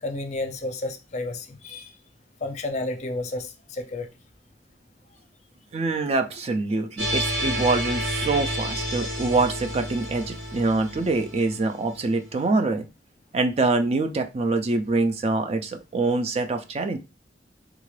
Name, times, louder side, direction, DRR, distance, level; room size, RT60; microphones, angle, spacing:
voice 1, 0.0-1.9 2.4-4.1, left 2 dB, 40° left, 0.5 m, -31 dB
voice 2, 5.7-12.8 13.3-17.0, right 3 dB, 35° right, 0.3 m, -25 dB
sound 1, 7.0-12.1, equal, 80° right, 1.3 m, -30 dB
3.5 x 2.4 x 3.2 m
head